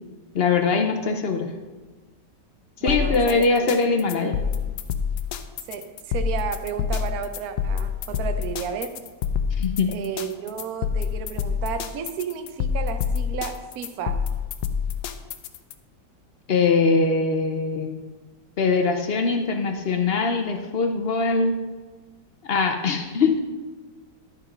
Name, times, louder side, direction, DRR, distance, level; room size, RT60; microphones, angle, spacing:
voice 1, 0.3-1.5 2.8-4.4 9.6-9.9 16.5-18.0 18.6-21.5 22.4-23.4, left 4 dB, 60° left, 5 dB, 0.6 m, -22 dB
voice 2, 2.8-3.8 5.7-8.9 9.9-14.2, right 7 dB, 65° right, 8 dB, 1.1 m, -32 dB
sound 1, 2.9-15.7, left 7 dB, 80° left, 1.2 m, -27 dB
12.0 x 5.2 x 5.2 m, 1.3 s
omnidirectional pair, 1.9 m